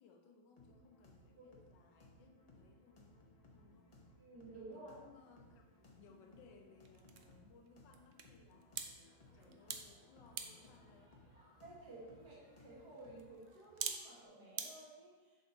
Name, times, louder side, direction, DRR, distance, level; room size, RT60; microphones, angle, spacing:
voice 1, 0.0-4.0 4.7-11.1, left 4 dB, 80° left, 3 dB, 1.4 m, -65 dB
sound 1, 0.6-13.4, left 1 dB, 45° left, 0.5 m, -64 dB
voice 2, 4.2-5.0 11.6-15.5, right 2 dB, 65° right, -6 dB, 2.2 m, -54 dB
sound 2, 5.3-14.7, right 7 dB, 85° right, 0.6 m, -50 dB
Crowd, 9.0-14.3, equal, 5° right, 1.9 m, -71 dB
7.1 x 6.0 x 2.8 m, 1.2 s
omnidirectional pair, 1.9 m